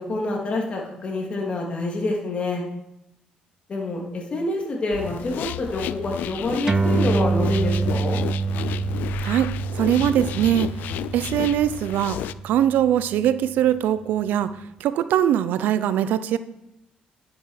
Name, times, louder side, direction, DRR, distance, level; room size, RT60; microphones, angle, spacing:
voice 1, 0.0-2.6 3.7-8.2, left 2 dB, 40° left, 0 dB, 3.2 m, -27 dB
sound 1, 4.9-12.3, left 12 dB, 80° left, 0.4 m, -32 dB
sound 2, 6.7-13.5, right 4 dB, 25° right, 0.4 m, -26 dB
voice 2, 9.8-10.7 11.1-12.2 12.4-14.5 14.8-16.4, right 10 dB, 80° right, 14 dB, 0.7 m, -21 dB
10.5 x 7.9 x 5.9 m, 0.88 s
cardioid pair, 85°, 3 cm